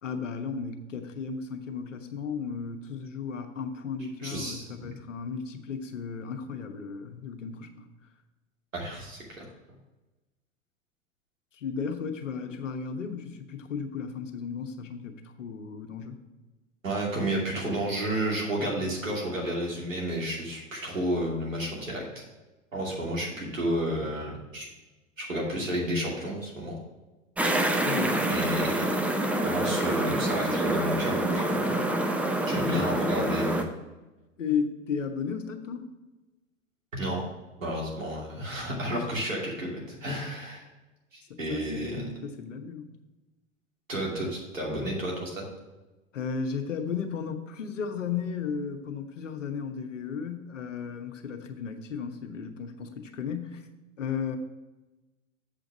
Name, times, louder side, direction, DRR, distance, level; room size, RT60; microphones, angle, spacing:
voice 1, 0.0-7.9 11.5-16.2 27.8-28.2 32.6-33.2 34.4-35.9 41.3-42.9 46.1-53.7 54.0-54.4, left 6 dB, 75° left, 6 dB, 1.1 m, -34 dB
voice 2, 4.2-4.6 8.7-9.4 16.8-22.2 22.7-24.7 25.2-26.8 28.3-28.9 29.4-31.7 32.5-33.6 36.9-37.2 37.6-40.6 41.1-42.0 43.9-45.5, right 1 dB, 85° right, -3 dB, 2.8 m, -31 dB
sound 1, 27.4-33.6, right 1 dB, 5° right, 0.4 m, -27 dB
7.6 x 5.1 x 6.0 m, 1.1 s
figure-of-eight pair, 95°, 38 cm